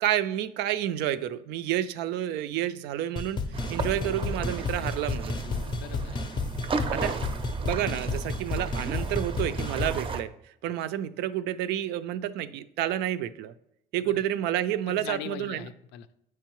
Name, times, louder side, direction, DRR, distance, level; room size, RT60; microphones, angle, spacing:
voice 1, 0.0-5.4 6.9-7.2 7.6-10.3 10.6-13.5 13.9-15.7, right 12 dB, 85° right, 14 dB, 0.4 m, -30 dB
sound 1, 3.2-10.0, left 4 dB, 25° left, 0.5 m, -32 dB
sound 2, 3.5-10.2, right 4 dB, 30° right, 0.5 m, -34 dB
voice 2, 5.4-6.2 14.0-14.2 14.9-16.1, left 10 dB, 85° left, 11 dB, 0.5 m, -41 dB
7.5 x 4.6 x 3.0 m, 0.80 s
cardioid pair, 110°, 17 cm